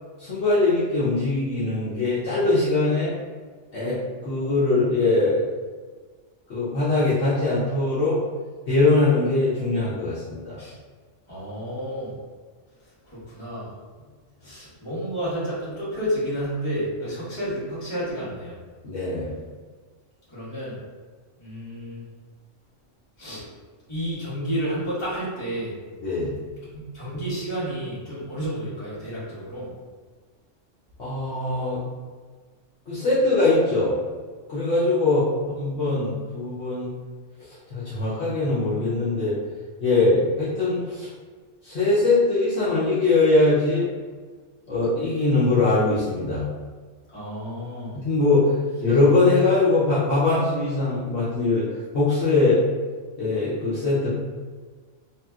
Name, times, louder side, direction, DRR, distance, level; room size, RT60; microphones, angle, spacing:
voice 1, 0.2-3.1 3.7-5.4 6.5-8.2 8.7-10.6 18.8-19.3 26.0-26.3 31.0-31.8 32.9-33.9 34.5-36.9 37.7-39.3 39.8-41.1 41.6-43.9 44.7-46.5 47.9-48.5 48.8-51.6 51.9-52.6 53.2-54.1, left 2 dB, 65° left, -10 dB, 1.0 m, -21 dB
voice 2, 11.3-12.1 13.1-13.7 14.4-18.5 20.3-20.7 21.4-22.0 23.2-23.5 23.9-25.7 26.7-29.7 47.1-48.0, equal, 25° left, -11 dB, 1.4 m, -30 dB
3.0 x 2.8 x 2.3 m, 1.5 s
omnidirectional pair, 1.3 m